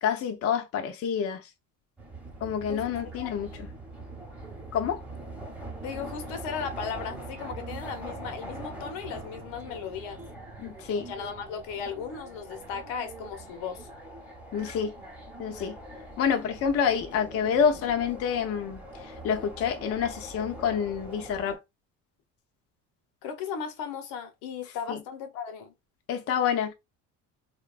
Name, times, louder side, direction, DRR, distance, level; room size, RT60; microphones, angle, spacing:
voice 1, 0.0-1.5 2.4-3.7 4.7-5.0 10.6-11.1 14.5-14.9 15.4-15.8 16.2-21.6 24.9-25.0 26.1-26.7, left 7 dB, 40° left, 0.5 m, -28 dB
sound 1, 2.0-21.6, right 1 dB, 5° right, 0.9 m, -42 dB
voice 2, 3.2-3.6 5.8-10.2 10.9-13.9 23.2-25.7, left 6 dB, 75° left, 0.8 m, -36 dB
2.8 x 2.3 x 2.3 m
supercardioid pair, 90°, 40 cm